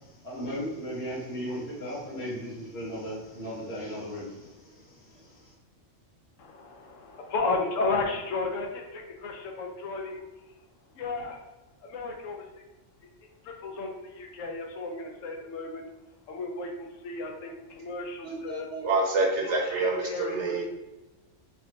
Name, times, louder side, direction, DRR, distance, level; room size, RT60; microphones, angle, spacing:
voice 1, 0.0-5.5, equal, 55° left, -8 dB, 1.7 m, -37 dB
voice 2, 6.4-10.2 11.0-11.4 11.8-12.6 13.4-15.9 16.3-18.7 19.4-20.6, left 3 dB, 80° left, 2 dB, 1.0 m, -34 dB
voice 3, 18.2-20.7, right 3 dB, 65° right, -1 dB, 1.1 m, -27 dB
4.3 x 2.6 x 2.8 m, 1.0 s
omnidirectional pair, 1.3 m